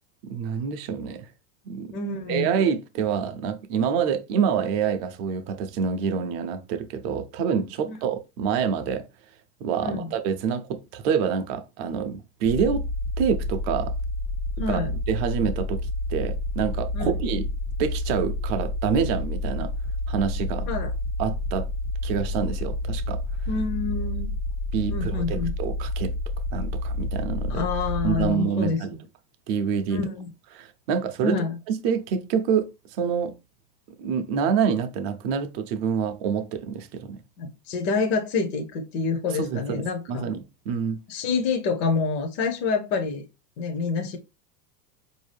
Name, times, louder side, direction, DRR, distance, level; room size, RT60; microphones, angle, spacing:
voice 1, 0.2-1.3 1.7-1.9 2.3-9.0 9.6-12.8 13.2-13.9 14.7-14.8 15.1-15.8 16.1-17.4 17.8-19.7 20.1-20.7 21.2-21.7 22.0-23.2 24.7-26.1 26.5-27.7 28.0-29.0 29.5-30.0 30.5-31.4 31.7-32.7 33.0-33.3 34.0-37.2 39.4-41.0, right 7 dB, 40° right, 0.5 m, -27 dB
voice 2, 1.9-2.5 7.8-8.0 9.8-10.1 14.6-14.9 16.9-17.1 20.7-20.9 23.5-24.3 24.9-25.5 27.5-29.0 29.9-30.3 31.2-31.5 37.4-40.3 41.1-43.2 43.6-44.2, left 4 dB, 40° left, 0.6 m, -27 dB
sound 1, 12.5-28.3, left 1 dB, 80° left, 1.3 m, -29 dB
4.5 x 2.7 x 3.2 m
supercardioid pair, 155°, 49 cm